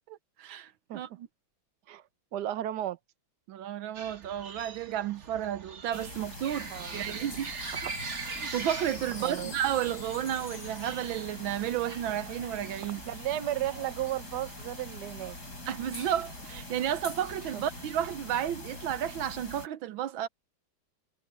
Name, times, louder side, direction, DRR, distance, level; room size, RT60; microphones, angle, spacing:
voice 1, 0.1-1.3 3.5-7.5 8.4-13.0 15.7-20.3, right 11 dB, 80° right, 1.6 m, -32 dB
voice 2, 2.3-3.0 6.7-7.2 9.2-9.5 13.0-15.4 17.5-17.6, right 13 dB, 60° right, 1.5 m, -34 dB
sound 1, 3.9-18.2, right 4 dB, 40° right, 1.5 m, -44 dB
Wind chime, 5.9-11.9, left 5 dB, 80° left, 4.0 m, -50 dB
sound 2, 5.9-19.7, left 2 dB, 50° left, 7.8 m, -44 dB
omnidirectional pair, 2.2 m